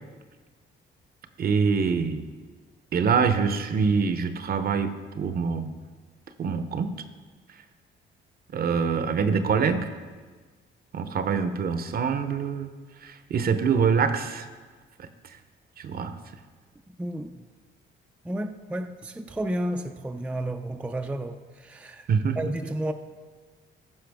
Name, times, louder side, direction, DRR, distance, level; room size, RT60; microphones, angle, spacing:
voice 1, 1.4-2.2 2.9-5.7 6.4-7.0 8.5-9.9 10.9-12.7 13.0-14.5 15.0-15.1 15.8-16.2 22.1-22.5, right 5 dB, 50° right, 10 dB, 0.7 m, -25 dB
voice 2, 16.9-17.5 18.2-22.1 22.4-22.9, right 1 dB, 5° right, 6 dB, 0.4 m, -32 dB
15.0 x 5.6 x 3.4 m, 1.4 s
cardioid pair, 90°, 20 cm